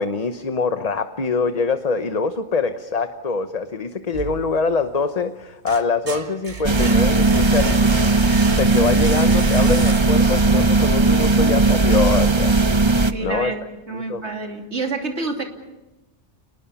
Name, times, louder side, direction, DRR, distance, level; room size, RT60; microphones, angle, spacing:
voice 1, 0.0-7.9 8.6-12.5 13.2-13.6 13.9-14.2, left 4 dB, 35° left, 8 dB, 1.0 m, -24 dB
sound 1, 4.1-5.0 5.4-10.4, right 4 dB, 45° right, 1.3 m, -32 dB
sound 2, 6.6-13.1, right 3 dB, 30° right, 0.8 m, -17 dB
voice 2, 13.1-13.6 13.9-15.4, right 3 dB, 80° right, 3 dB, 3.3 m, -28 dB
29.0 x 20.0 x 7.1 m, 1.0 s
omnidirectional pair, 1.2 m